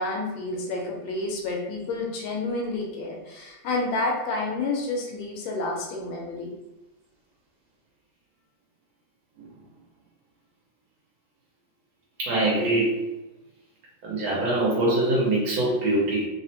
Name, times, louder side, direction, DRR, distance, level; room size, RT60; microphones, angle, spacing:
voice 1, 0.0-6.6, left 2 dB, 85° left, -1 dB, 1.5 m, -29 dB
voice 2, 12.2-13.1 14.0-16.3, right 2 dB, 85° right, -5 dB, 1.7 m, -23 dB
3.8 x 2.0 x 2.8 m, 1.0 s
omnidirectional pair, 2.1 m